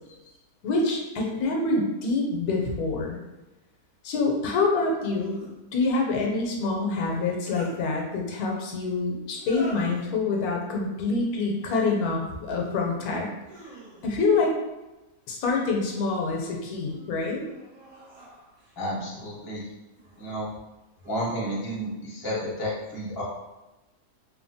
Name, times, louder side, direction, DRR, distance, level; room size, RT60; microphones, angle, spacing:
voice 1, 0.6-3.2 4.0-5.4 5.7-13.3 14.0-14.5 15.3-17.4, left 3 dB, 80° left, -1 dB, 1.1 m, -26 dB
sound 1, 2.5-2.6 4.9-5.5 7.0-7.8 9.3-10.0 11.5-12.0 12.5-13.0 13.4-14.3 15.5-16.2 16.8-18.8 19.9-20.4 21.0-21.5, equal, 75° right, 1.4 m, -46 dB
voice 2, 18.8-19.6 20.2-20.5 21.0-23.2, equal, 20° left, -6 dB, 0.6 m, -31 dB
3.0 x 2.1 x 2.7 m, 1.0 s
omnidirectional pair, 1.6 m